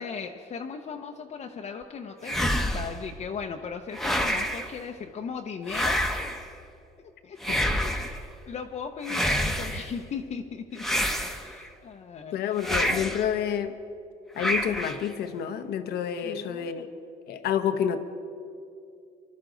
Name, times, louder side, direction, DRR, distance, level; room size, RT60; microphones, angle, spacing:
voice 1, 0.0-6.1 7.2-12.3 16.2-16.9, left 6 dB, 45° left, 2 dB, 0.8 m, -38 dB
sound 1, 2.2-3.0 3.9-4.7 5.7-6.5 7.4-8.2 9.0-9.9 10.8-11.7 12.6-13.3 14.4-15.1, equal, ahead, 1.0 m, -27 dB
voice 2, 12.3-13.8 14.4-16.9 17.3-18.0, left 9 dB, 70° left, 9 dB, 1.0 m, -29 dB
24.0 x 12.5 x 3.9 m, 2.6 s
cardioid pair, 110°, 17 cm